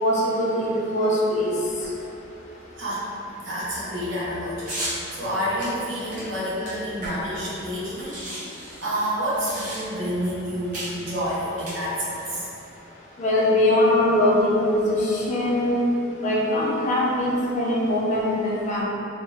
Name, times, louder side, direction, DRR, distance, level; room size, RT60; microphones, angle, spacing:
voice 1, 0.0-1.5 13.2-15.8 16.2-18.8, left 1 dB, 40° left, -5 dB, 0.5 m, -22 dB
voice 2, 3.4-8.2 8.5-12.5, equal, 70° right, -8 dB, 0.9 m, -29 dB
sound 1, 4.6-5.0 5.6-7.4 7.7-7.8 8.0-10.1 10.7-11.0 11.5-12.3, right 1 dB, 40° right, 0.9 m, -35 dB
3.0 x 2.1 x 3.4 m, 2.8 s
head